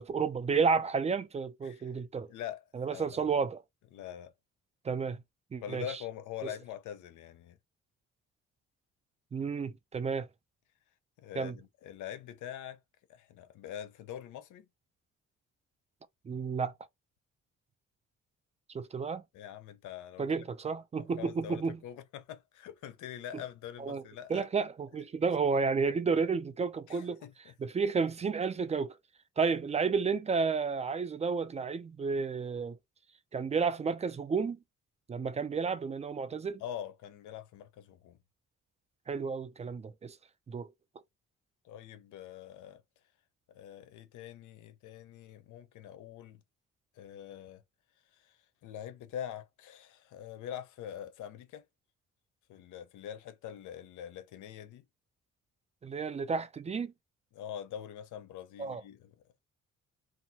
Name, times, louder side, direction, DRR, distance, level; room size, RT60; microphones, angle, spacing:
voice 1, 0.0-2.3 2.7-3.6 4.8-5.2 5.5-6.0 6.4-6.5 9.3-10.3 11.4-11.6 16.3-16.7 18.7-19.2 20.2-21.8 23.3-23.4 23.8-24.0 24.3-27.2 27.6-29.0 29.4-32.8 33.3-34.6 35.1-36.6 39.1-40.2 40.5-40.7 55.8-56.9 58.6-58.8, right 5 dB, 20° right, 0.3 m, -31 dB
voice 2, 2.3-3.3 3.9-4.3 5.6-7.6 11.2-12.8 13.1-14.7 19.3-20.3 21.0-24.5 26.9-27.5 36.6-38.2 41.6-42.8 43.5-46.4 47.0-47.6 48.1-48.3 48.6-51.6 52.5-54.8 57.3-59.1, left 10 dB, 80° left, 0.6 m, -44 dB
2.7 x 2.3 x 2.7 m
cardioid pair, 90°, 30 cm